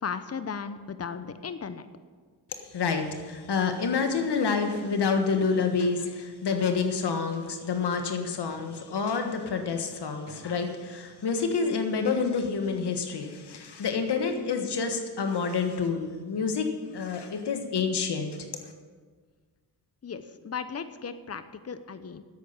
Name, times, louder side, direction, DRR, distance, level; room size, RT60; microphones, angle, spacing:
voice 1, 0.0-1.9 20.0-22.2, left 6 dB, 35° left, 11 dB, 0.9 m, -36 dB
voice 2, 2.5-16.7 16.9-18.4 18.6-18.7, left 5 dB, 70° left, 5 dB, 1.5 m, -28 dB
10.0 x 8.6 x 7.2 m, 1.5 s
cardioid pair, 50°, 41 cm